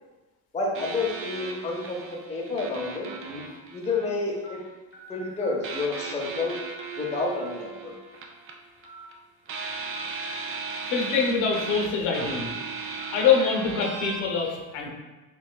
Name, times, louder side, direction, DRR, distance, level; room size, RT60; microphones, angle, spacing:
voice 1, 0.5-3.4 3.7-4.6 5.1-6.6 7.0-7.9, left 3 dB, 15° left, -2 dB, 0.6 m, -30 dB
sound 1, 0.7-4.6 5.6-9.2 9.5-14.2, right 4 dB, 30° right, 0.4 m, -37 dB
sound 2, 0.9-1.1 1.8-1.9 3.0-3.2 3.9-4.0 4.4-4.5 4.9-6.1 6.3-7.0 7.4-7.5 8.8-9.0 9.4-9.5 10.9-11.1 11.6-11.7 12.2-12.3 12.9-13.1, right 3 dB, 30° left, 0.9 m, -47 dB
voice 2, 10.9-12.5 12.8-14.9, left 5 dB, 65° left, 0 dB, 0.8 m, -25 dB
3.2 x 2.8 x 2.2 m, 1.2 s
hypercardioid pair, 75°, 45 cm